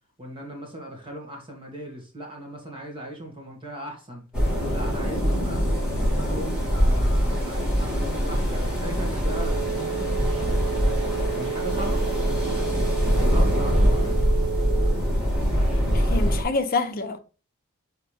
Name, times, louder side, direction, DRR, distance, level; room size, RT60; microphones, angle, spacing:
voice 1, 0.2-4.3 4.7-10.5 11.3-12.1 13.1-14.2, right 1 dB, 25° right, 1.9 m, -38 dB
sound 1, 4.3-16.4, equal, 5° right, 2.5 m, -23 dB
sound 2, 9.2-14.9, right 11 dB, 65° right, 2.9 m, -32 dB
voice 2, 15.9-17.2, left 3 dB, 40° left, 0.8 m, -26 dB
6.4 x 4.6 x 3.4 m
head